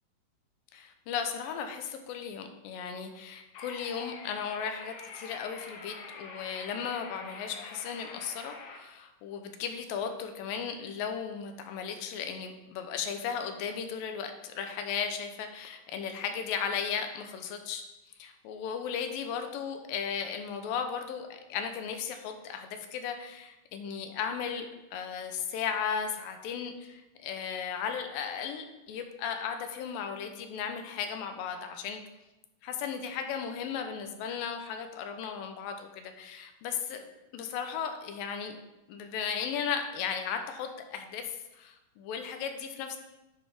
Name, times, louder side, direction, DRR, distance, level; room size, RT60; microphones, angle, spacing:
voice 1, 0.7-17.8 18.2-24.7 24.9-32.0 32.6-37.1 37.3-38.6 38.9-41.3 41.5-43.0, left 7 dB, 85° left, 6 dB, 2.4 m, -36 dB
sound 1, 3.5-8.8, left 4 dB, 70° left, 2.3 m, -46 dB
9.5 x 5.1 x 3.5 m, 1.0 s
omnidirectional pair, 4.1 m